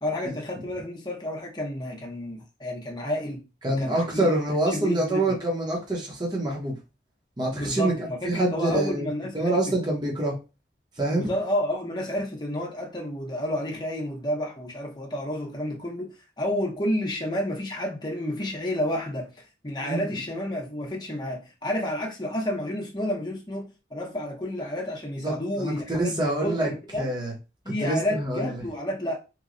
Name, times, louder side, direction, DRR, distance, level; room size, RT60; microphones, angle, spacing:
voice 1, 0.0-4.3 4.7-5.4 7.5-9.8 11.1-27.1 27.6-29.2, left 1 dB, 25° left, 0.8 m, -30 dB
voice 2, 3.6-6.8 7.4-7.9 8.2-9.1 9.3-10.4 11.0-11.3 19.8-20.1 25.2-27.3 27.8-28.5, right 1 dB, 25° right, 0.9 m, -26 dB
3.1 x 2.3 x 3.7 m
head